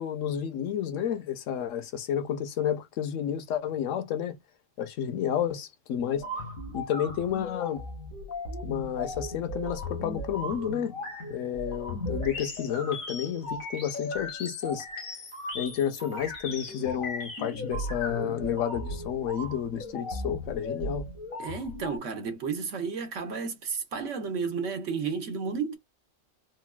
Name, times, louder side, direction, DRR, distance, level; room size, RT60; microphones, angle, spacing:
voice 1, 0.0-4.3 4.8-6.2 6.7-7.8 8.6-11.0 11.3-14.9 15.5-21.0, left 9 dB, 70° left, 1.0 m, -31 dB
sound 1, 6.1-22.0, left 2 dB, 85° left, 1.7 m, -37 dB
voice 2, 21.4-25.8, right 5 dB, 70° right, 1.2 m, -32 dB
3.9 x 2.2 x 2.2 m
omnidirectional pair, 1.4 m